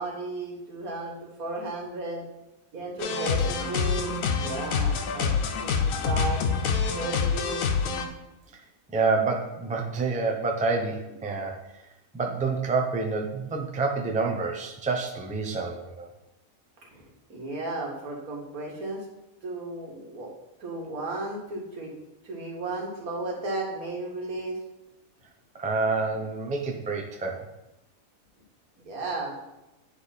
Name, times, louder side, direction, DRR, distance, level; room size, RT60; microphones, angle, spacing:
voice 1, 0.0-2.3 2.7-4.1 4.4-5.4 5.6-6.4 6.7-7.6 16.9-17.0 17.3-19.0 19.4-20.3 20.6-21.9 22.2-24.6 28.8-29.3, right 2 dB, 90° right, -1 dB, 1.9 m, -34 dB
sound 1, 3.0-8.1, left 5 dB, 75° left, 1.1 m, -26 dB
voice 2, 8.9-11.6 12.1-16.1 25.5-27.5, right 4 dB, 10° right, 1 dB, 0.4 m, -28 dB
9.8 x 3.3 x 4.1 m, 0.97 s
omnidirectional pair, 1.5 m